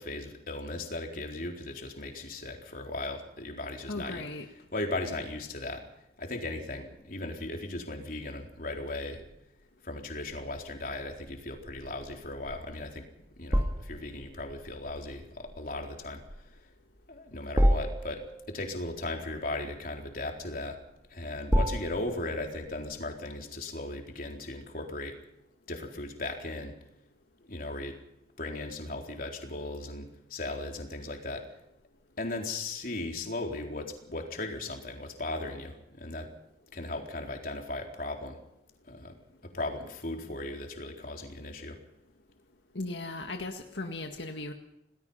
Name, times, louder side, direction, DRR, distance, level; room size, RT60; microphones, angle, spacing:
voice 1, 0.0-4.2 4.7-5.8 6.2-9.2 9.8-13.0 13.4-16.2 17.1-20.8 21.1-25.2 25.7-26.8 27.5-27.9 28.4-31.5 32.2-36.3 36.7-38.4 38.9-39.1 39.4-41.8, left 2 dB, 50° left, 2 dB, 4.1 m, -37 dB
voice 2, 3.9-4.5 42.8-44.5, left 2 dB, 85° left, 3 dB, 1.9 m, -37 dB
sound 1, 10.3-23.0, equal, 15° right, 2.2 m, -32 dB
27.5 x 19.0 x 5.7 m, 0.82 s
head